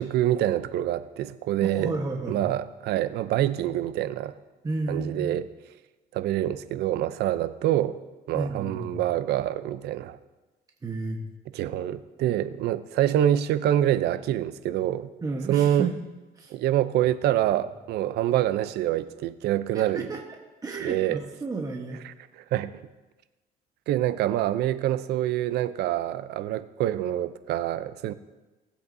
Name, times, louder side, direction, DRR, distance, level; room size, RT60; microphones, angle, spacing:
voice 1, 0.0-1.9 2.2-4.4 4.9-5.5 6.1-8.0 8.3-10.2 11.5-15.1 15.5-15.9 16.5-20.0 20.8-21.2 22.0-22.7 23.9-28.1, right 12 dB, 75° right, 14 dB, 0.6 m, -26 dB
voice 2, 1.6-2.4 4.6-5.4 8.3-9.0 10.8-11.2 15.2-16.0 16.4-16.5 19.9-20.2 20.6-22.0, right 3 dB, 20° right, 0 dB, 1.2 m, -32 dB
18.5 x 8.2 x 2.7 m, 1.1 s
cardioid pair, 110°, 17 cm